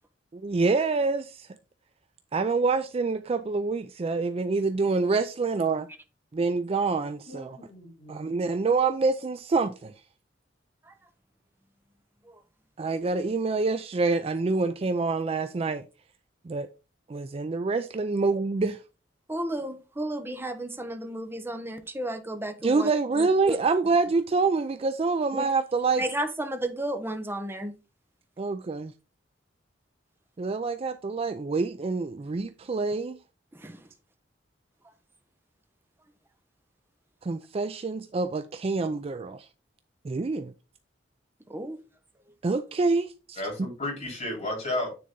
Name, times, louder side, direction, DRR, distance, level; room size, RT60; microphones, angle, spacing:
voice 1, 0.3-1.5 2.3-5.9 6.3-7.6 8.1-9.9 12.8-15.8 16.5-16.7 17.1-18.8 22.6-26.0 28.4-28.9 30.4-33.2 37.2-39.5 40.0-40.5 42.4-43.4, right 4 dB, 30° right, 0.4 m, -26 dB
voice 2, 7.3-8.2 43.4-45.0, left 1 dB, 35° left, 3.9 m, -33 dB
voice 3, 19.3-23.6 25.3-25.5 26.0-27.7 33.6-33.9 41.5-41.8, right 1 dB, 10° right, 1.0 m, -33 dB
9.4 x 4.0 x 3.7 m
head